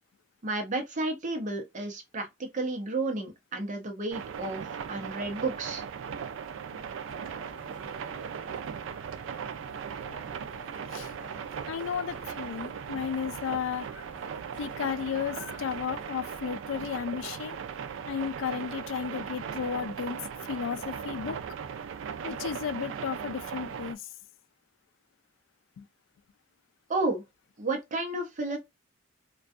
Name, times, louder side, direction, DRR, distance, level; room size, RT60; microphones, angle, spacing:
voice 1, 0.4-5.8 26.9-27.2 27.6-28.6, right 2 dB, 40° right, 0.6 m, -32 dB
sound 1, 4.1-24.0, right 7 dB, 85° right, 0.3 m, -38 dB
sound 2, 7.0-16.1, left 1 dB, 50° left, 1.1 m, -52 dB
voice 2, 11.7-13.9 14.6-17.6 18.1-21.4 22.2-24.1 25.8-25.9, left 7 dB, 90° left, 0.3 m, -34 dB
2.5 x 2.2 x 2.3 m
head